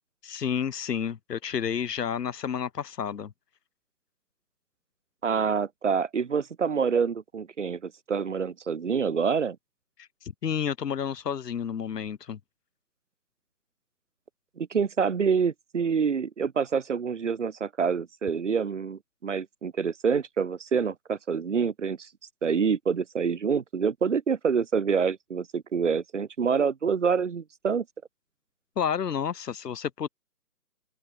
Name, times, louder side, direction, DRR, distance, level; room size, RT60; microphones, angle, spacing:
voice 1, 0.2-3.3 10.2-12.4 28.8-30.1, left 8 dB, 80° left, 0.8 m, -30 dB
voice 2, 5.2-9.6 14.6-22.1 22.4-27.8, right 6 dB, 50° right, 1.0 m, -27 dB
open air
figure-of-eight pair, 160°, 48 cm